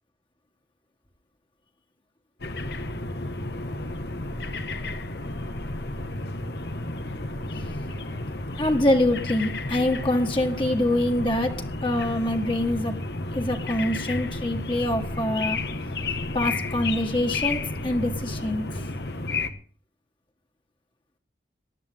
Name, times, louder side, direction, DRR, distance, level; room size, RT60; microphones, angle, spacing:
sound 1, 2.4-19.5, left 2 dB, 70° left, 1.7 m, -32 dB
voice 1, 8.6-13.0 13.3-15.6 16.3-18.7, left 1 dB, 30° left, 3 dB, 1.9 m, -25 dB
19.0 x 12.5 x 3.8 m, 0.43 s
head